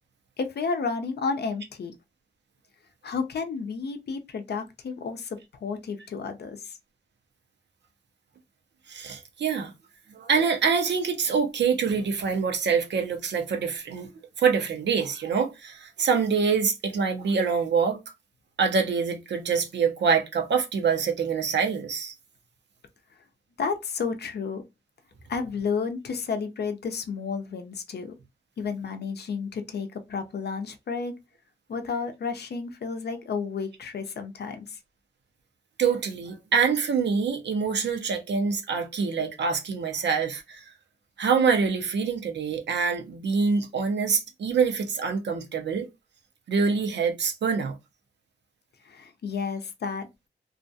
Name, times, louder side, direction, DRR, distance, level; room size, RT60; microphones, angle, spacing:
voice 1, 0.4-1.9 3.0-6.8 23.6-24.6 25.3-28.2 28.6-31.1 31.7-34.8 48.8-50.3, left 5 dB, 65° left, 0.5 m, -31 dB
voice 2, 8.9-9.7 10.1-14.1 14.4-18.0 18.6-22.1 35.8-40.6 41.2-45.9 46.5-47.8, right 5 dB, 80° right, 0.6 m, -25 dB
2.3 x 2.3 x 2.6 m
cardioid pair, 45°, 18 cm